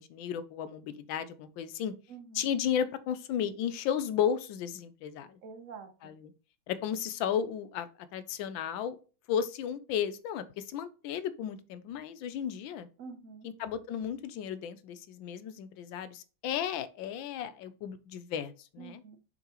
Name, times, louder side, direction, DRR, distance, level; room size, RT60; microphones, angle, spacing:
voice 1, 0.0-1.9 2.3-5.4 6.0-6.3 6.7-8.9 9.3-12.9 13.4-19.0, left 8 dB, 75° left, 14 dB, 1.3 m, -34 dB
voice 2, 2.1-2.5 5.4-6.1 13.0-13.5 18.8-19.2, right 5 dB, 65° right, 8 dB, 0.8 m, -47 dB
6.6 x 5.3 x 2.9 m, 0.35 s
omnidirectional pair, 2.2 m